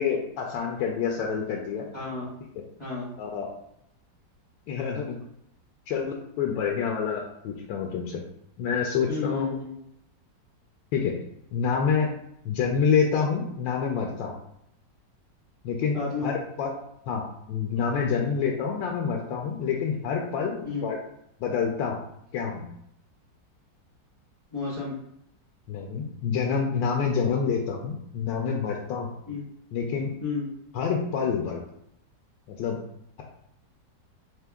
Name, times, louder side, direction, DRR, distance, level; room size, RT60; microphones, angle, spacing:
voice 1, 0.0-1.8 3.2-3.5 4.7-5.2 5.9-8.2 8.6-9.6 10.9-11.1 11.5-12.1 12.4-14.3 15.6-16.7 17.1-17.2 17.5-21.0 21.4-22.0 22.3-22.7 25.7-29.2 29.7-30.1 30.7-31.6 32.5-32.8, left 6 dB, 90° left, 0 dB, 1.3 m, -27 dB
voice 2, 1.9-2.3 2.8-3.1 9.1-9.7 15.9-16.3 20.6-20.8 24.5-24.9 29.3-29.4 30.2-30.5, left 4 dB, 15° left, -13 dB, 1.3 m, -31 dB
3.7 x 2.8 x 3.5 m, 0.75 s
omnidirectional pair, 2.0 m